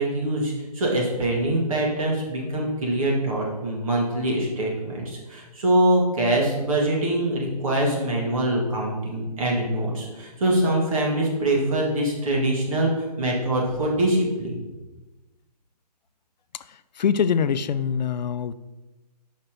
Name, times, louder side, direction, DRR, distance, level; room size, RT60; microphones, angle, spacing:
voice 1, 0.0-14.6, right 1 dB, 55° right, -2 dB, 2.0 m, -24 dB
voice 2, 16.7-18.5, left 7 dB, 90° left, 14 dB, 0.4 m, -24 dB
5.6 x 4.5 x 4.9 m, 1.1 s
hypercardioid pair, 165°, 21 cm